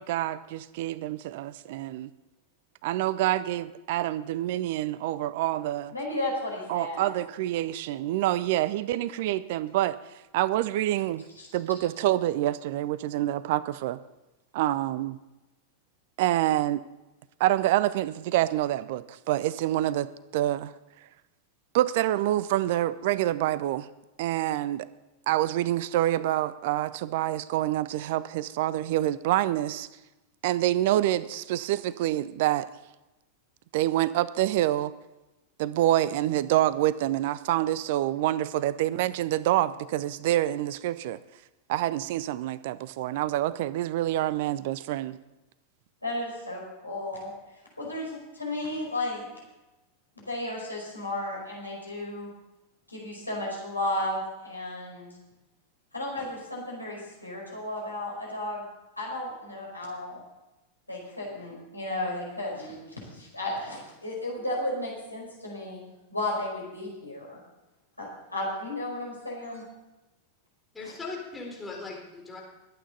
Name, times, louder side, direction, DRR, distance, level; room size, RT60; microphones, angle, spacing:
voice 1, 0.0-2.1 2.8-5.9 6.7-10.0 10.3-11.2 11.5-14.0 14.5-15.2 16.2-16.8 17.4-20.7 21.7-23.9 24.2-24.9 25.3-29.9 30.4-32.7 33.7-34.9 35.6-41.2 41.7-45.2, right 14 dB, 50° right, 18 dB, 0.5 m, -27 dB
voice 2, 5.9-7.1 11.4-11.5 46.0-47.3 47.8-49.3 50.1-52.3 52.9-55.1 55.9-58.6 59.0-60.2 60.9-62.8 63.1-65.8 66.1-67.4 68.0-69.7, left 1 dB, 85° left, -2 dB, 4.8 m, -34 dB
voice 3, 70.7-72.4, left 3 dB, 10° left, -2 dB, 4.0 m, -39 dB
21.5 x 8.8 x 4.0 m, 1.0 s
figure-of-eight pair, 90°, 0 cm